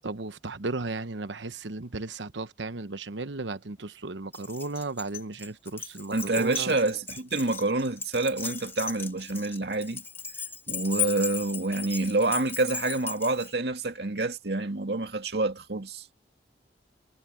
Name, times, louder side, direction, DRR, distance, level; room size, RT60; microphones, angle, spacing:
voice 1, 0.0-6.8, right 3 dB, 80° right, 1.0 m, -35 dB
Keys jangling, 4.3-13.5, left 7 dB, 15° left, 1.9 m, -36 dB
voice 2, 6.1-10.0 10.7-16.1, right 2 dB, 65° right, 2.3 m, -27 dB
head